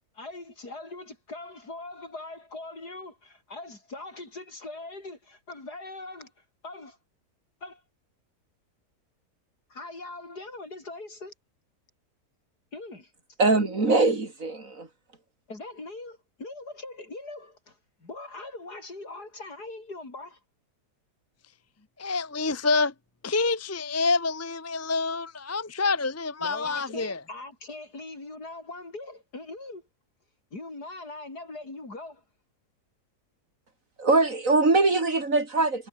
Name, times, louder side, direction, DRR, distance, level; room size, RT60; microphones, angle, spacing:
voice 1, 0.1-7.0 7.6-7.8 9.7-11.3 12.7-13.1 15.5-20.4 26.4-29.9 30.5-32.2, left 2 dB, 85° left, 6.5 m, -41 dB
voice 2, 13.4-14.9 34.0-35.9, right 3 dB, 55° right, 3.9 m, -22 dB
voice 3, 22.0-22.9 23.2-27.2, left 3 dB, 15° left, 0.7 m, -27 dB
omnidirectional pair, 1.7 m